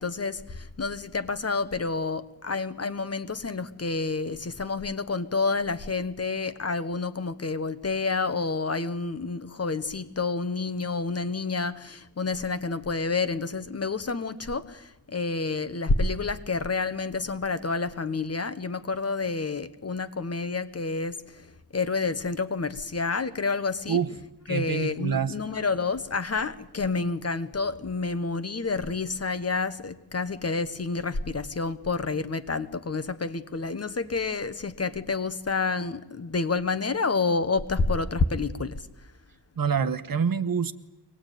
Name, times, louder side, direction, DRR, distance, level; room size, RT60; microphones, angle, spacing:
voice 1, 0.0-24.0 24.5-38.9, left 4 dB, 35° left, 12 dB, 1.3 m, -29 dB
voice 2, 24.5-25.4 39.6-40.7, right 6 dB, 55° right, 12 dB, 1.2 m, -26 dB
24.5 x 19.0 x 9.3 m, 0.96 s
wide cardioid pair, 135°, 41 cm